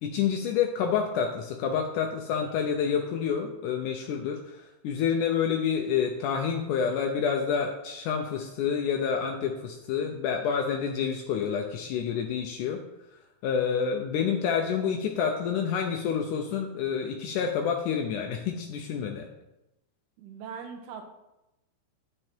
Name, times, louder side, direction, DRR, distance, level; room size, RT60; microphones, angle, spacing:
voice 1, 0.0-12.8 13.4-19.3, left 7 dB, 85° left, 3 dB, 1.7 m, -28 dB
voice 2, 20.2-21.1, right 6 dB, 80° right, 5 dB, 2.9 m, -40 dB
9.9 x 7.4 x 4.5 m, 0.93 s
omnidirectional pair, 4.5 m